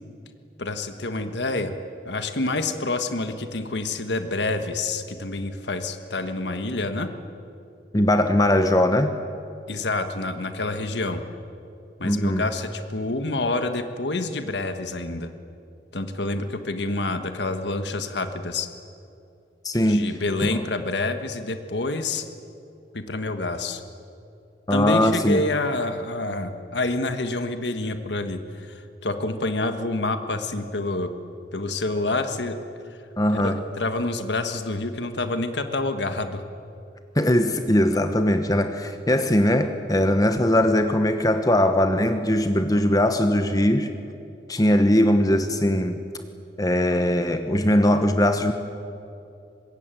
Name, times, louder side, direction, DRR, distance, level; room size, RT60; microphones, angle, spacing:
voice 1, 0.6-1.8 2.0-7.1 9.7-11.2 12.0-15.3 15.9-18.7 19.9-22.2 22.9-23.8 24.7-31.1 31.5-32.6 33.3-36.4, left 2 dB, 75° left, 8 dB, 1.5 m, -27 dB
voice 2, 7.9-9.2 12.0-12.4 19.6-20.6 24.7-25.4 33.2-33.6 37.1-43.9 44.5-46.0 46.6-48.5, left 1 dB, 20° left, 8 dB, 1.1 m, -20 dB
25.5 x 21.5 x 9.1 m, 2.6 s
head